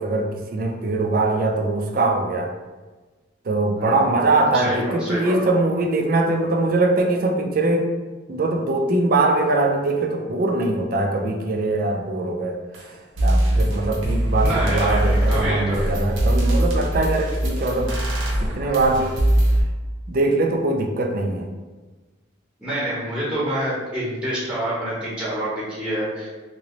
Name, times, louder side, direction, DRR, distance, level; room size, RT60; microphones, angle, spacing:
voice 1, 0.0-2.5 3.5-7.9 8.3-12.6 13.2-17.9 18.4-19.2 20.1-21.5, right 2 dB, 45° right, 3 dB, 0.4 m, -22 dB
voice 2, 3.8-4.1 4.5-5.4 14.4-16.0 22.6-26.3, right 1 dB, 5° right, -8 dB, 0.8 m, -27 dB
sound 1, 12.7-12.8 13.2-19.6, right 1 dB, 85° right, 0.9 m, -21 dB
2.9 x 2.9 x 2.9 m, 1.3 s
head